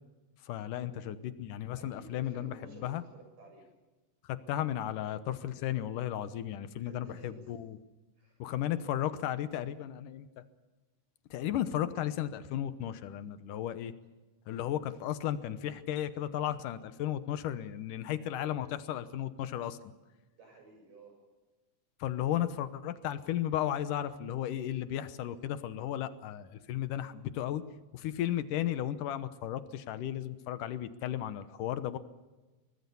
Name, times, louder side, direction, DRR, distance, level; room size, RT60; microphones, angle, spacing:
voice 1, 0.5-2.5 2.8-3.0 4.3-7.8 8.4-10.3 11.3-13.9 14.5-19.8 22.0-27.6 27.9-32.0, left 11 dB, 90° left, 12 dB, 2.6 m, -34 dB
voice 2, 1.8-3.6 6.8-7.5 8.2-8.4 18.2-18.5 20.4-21.1, right 3 dB, 80° right, 2 dB, 9.2 m, -54 dB
24.0 x 19.0 x 7.0 m, 1.2 s
omnidirectional pair, 3.7 m